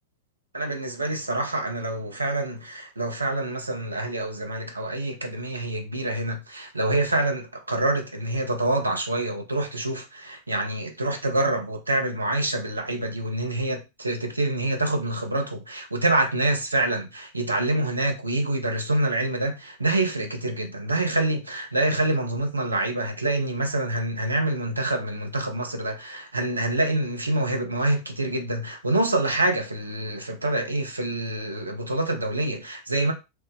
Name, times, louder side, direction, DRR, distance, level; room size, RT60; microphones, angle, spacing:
voice 1, 0.5-33.1, right 2 dB, 80° right, 0.6 m, -26 dB
3.1 x 2.1 x 3.1 m
figure-of-eight pair, 90°, 0 cm